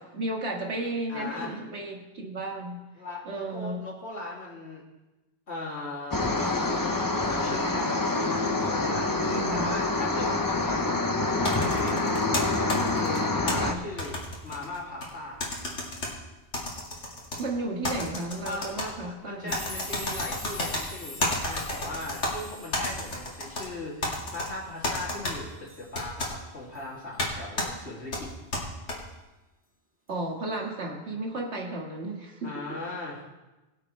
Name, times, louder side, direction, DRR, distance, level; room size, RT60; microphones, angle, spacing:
voice 1, 0.1-2.8 3.3-3.8 9.3-9.7 13.6-13.8 17.4-19.6 30.1-32.6, right 2 dB, 70° right, 0 dB, 2.1 m, -33 dB
voice 2, 1.1-1.6 3.0-4.8 5.5-8.3 8.6-12.2 12.8-15.5 18.4-28.3 32.4-33.2, left 2 dB, 70° left, -4 dB, 3.1 m, -38 dB
sound 1, 6.1-13.7, left 2 dB, 20° left, 0.7 m, -26 dB
sound 2, 11.4-13.5 14.0-15.1 15.4-16.1 16.5-17.4 17.8-18.9 19.5-20.8 21.2-22.3 22.7-23.7 24.0-24.5 24.8-25.3 25.9-26.3 27.2-27.3 27.6-27.7 28.1-29.0, left 1 dB, 85° left, 2.5 m, -31 dB
sound 3, 19.5-26.4 26.7-26.9 28.2-28.3, left 2 dB, 10° right, 1.8 m, -44 dB
21.5 x 7.6 x 3.3 m, 1.1 s
omnidirectional pair, 1.2 m